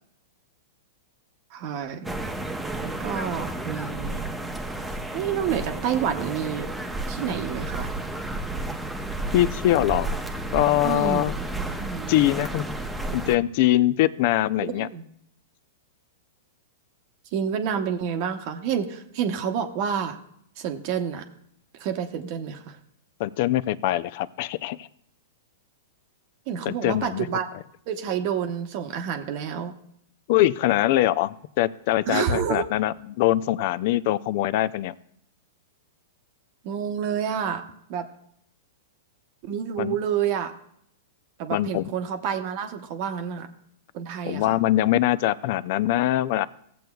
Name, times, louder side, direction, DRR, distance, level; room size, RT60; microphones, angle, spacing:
voice 1, 1.5-2.2 2.8-4.2 5.1-6.7 7.1-7.9 10.8-12.1 14.6-15.0 17.3-20.2 20.6-21.2 21.8-22.8 26.5-27.5 27.9-29.7 32.1-32.6 36.6-37.6 37.9-38.1 39.4-40.5 41.4-43.5 43.9-44.5, right 8 dB, 45° right, 6 dB, 0.8 m, -29 dB
sound 1, 2.0-13.4, right 2 dB, 5° right, 0.7 m, -32 dB
voice 2, 9.3-10.2 10.5-11.3 12.1-12.7 13.1-14.9 23.2-24.9 26.6-27.3 30.3-34.9 39.8-39.9 41.5-41.9 44.2-46.5, left 14 dB, 50° left, 17 dB, 0.4 m, -23 dB
16.0 x 7.7 x 2.3 m, 0.71 s
hypercardioid pair, 140°, 0 cm